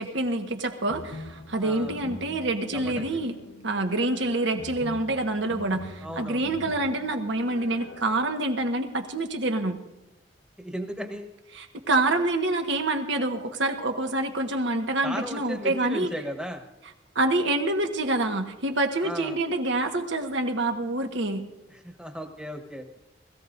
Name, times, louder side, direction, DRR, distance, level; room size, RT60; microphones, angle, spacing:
voice 1, 0.0-3.3 3.6-9.8 11.5-16.1 17.1-21.5, right 2 dB, 80° right, 5 dB, 1.4 m, -27 dB
sound 1, 0.9-8.3, left 1 dB, 80° left, 1.0 m, -43 dB
voice 2, 1.6-2.0 2.7-3.0 6.0-6.5 10.6-11.3 15.0-16.6 19.0-19.4 21.7-22.9, equal, 5° right, 4 dB, 1.2 m, -35 dB
20.5 x 15.5 x 2.6 m, 0.96 s
head